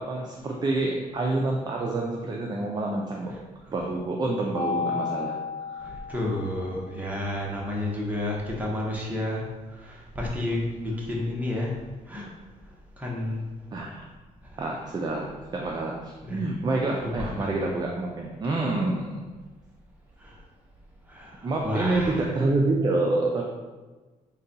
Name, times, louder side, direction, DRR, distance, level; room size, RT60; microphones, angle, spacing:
voice 1, 0.0-3.4 3.7-5.4 5.7-5.8 13.7-14.1 14.6-19.2 21.4-23.4, right 2 dB, 30° right, -1 dB, 0.4 m, -27 dB
Mallet percussion, 4.5-6.8, left 5 dB, 30° left, 0.8 m, -32 dB
voice 2, 5.8-9.5 9.7-11.8 12.1-12.3 13.0-13.5 14.4-14.6 16.2-16.4 17.0-17.5 20.2-20.4 21.1-22.2, left 1 dB, 10° right, -3 dB, 0.8 m, -31 dB
3.9 x 2.3 x 3.8 m, 1.3 s
cardioid pair, 120°, 15 cm